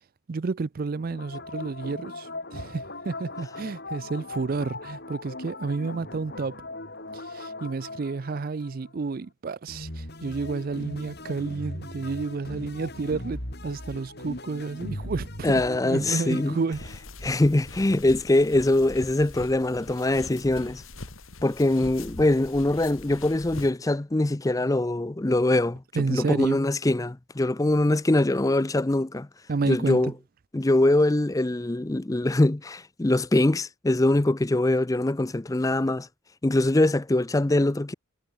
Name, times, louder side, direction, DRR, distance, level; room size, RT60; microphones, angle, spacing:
voice 1, 0.3-6.6 7.1-16.9 25.9-26.6 29.5-30.1, right 4 dB, 45° right, 0.4 m, -30 dB
sound 1, 1.0-9.2 9.7-17.1, left 2 dB, 50° left, 5.8 m, -39 dB
voice 2, 15.4-16.6 17.2-20.8 21.4-25.8 26.1-29.3 29.7-30.1 30.5-36.1 36.4-37.9, left 1 dB, 15° left, 0.5 m, -23 dB
sound 2, 16.7-23.7, left 2 dB, 80° left, 3.2 m, -42 dB
head